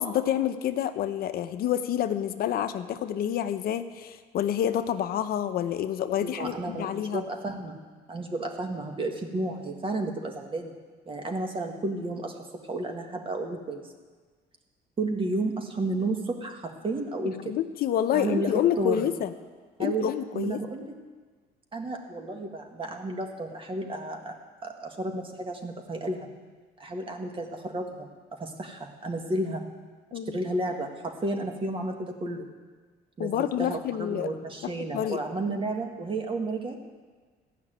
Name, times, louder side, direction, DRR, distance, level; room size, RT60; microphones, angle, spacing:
voice 1, 0.0-7.2 17.5-19.3 19.8-20.6 30.1-30.4 33.2-34.3 34.6-35.2, left 10 dB, 65° left, 9 dB, 0.7 m, -28 dB
voice 2, 6.2-7.8 8.1-10.7 11.1-12.4 12.7-13.8 15.0-17.4 18.1-19.1 19.8-20.9 21.7-24.4 24.6-26.3 26.8-29.6 30.3-32.5 33.2-36.8, right 2 dB, 30° right, 3 dB, 1.8 m, -32 dB
14.5 x 5.9 x 9.2 m, 1.4 s
cardioid pair, 110°, 17 cm